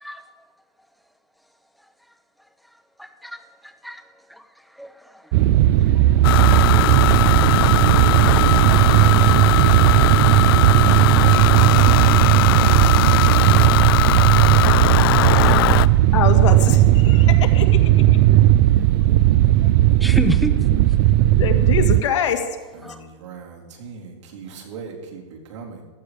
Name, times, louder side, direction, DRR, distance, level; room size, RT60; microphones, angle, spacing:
voice 1, 3.0-4.0 4.3-4.5 4.7-5.4 5.8-6.3 19.6-19.7 20.0-20.8 22.8-23.0, equal, ahead, 0.8 m, -30 dB
sound 1, 5.3-22.0, right 14 dB, 40° right, 0.4 m, -15 dB
sound 2, 6.2-15.9, left 16 dB, 50° left, 0.4 m, -20 dB
voice 2, 14.1-15.8 22.7-25.8, right 5 dB, 75° right, 3.8 m, -39 dB
voice 3, 16.1-18.2 21.4-22.6, left 8 dB, 75° left, 2.0 m, -24 dB
15.0 x 12.5 x 5.0 m
supercardioid pair, 160°, 16 cm